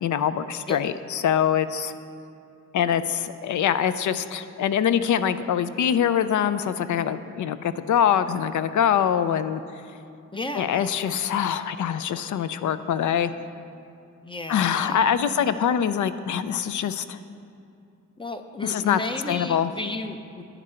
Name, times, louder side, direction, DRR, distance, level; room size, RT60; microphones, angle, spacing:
voice 1, 0.0-1.9 2.7-9.6 10.6-13.3 14.5-17.2 18.6-19.0 19.3-19.7, left 8 dB, 75° left, 12 dB, 0.5 m, -24 dB
voice 2, 10.3-10.9 14.2-15.7 18.2-20.4, left 2 dB, 15° left, 7 dB, 0.5 m, -34 dB
10.5 x 9.9 x 4.4 m, 2.6 s
wide cardioid pair, 130°, 30 cm